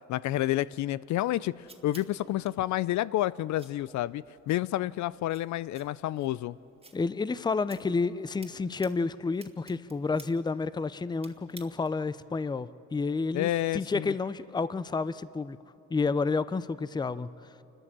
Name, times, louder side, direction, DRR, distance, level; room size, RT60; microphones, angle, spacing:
voice 1, 0.1-6.6 13.3-14.1, left 14 dB, 70° left, 19 dB, 0.4 m, -29 dB
sound 1, 1.1-12.1, right 3 dB, 20° right, 1.8 m, -57 dB
voice 2, 6.9-15.6 15.9-17.3, left 4 dB, 15° left, 16 dB, 0.5 m, -30 dB
28.5 x 12.5 x 7.5 m, 2.9 s
cardioid pair, 90°, 30 cm